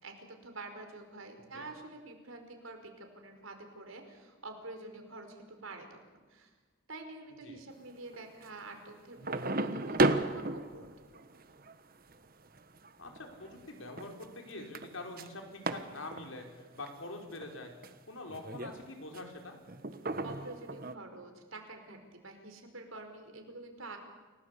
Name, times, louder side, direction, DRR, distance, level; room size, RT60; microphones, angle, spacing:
voice 1, 0.0-6.5 6.9-11.4 20.2-22.0 22.2-24.0, right 2 dB, 85° right, 5 dB, 5.1 m, -47 dB
sound 1, 8.1-8.6 9.1-16.4 16.7-16.9 17.3-17.9 18.3-19.4 19.7-20.9, right 2 dB, 45° right, 1.3 m, -35 dB
voice 2, 13.0-19.6, left 2 dB, 80° left, 3 dB, 4.9 m, -45 dB
29.5 x 18.5 x 8.5 m, 1.4 s
head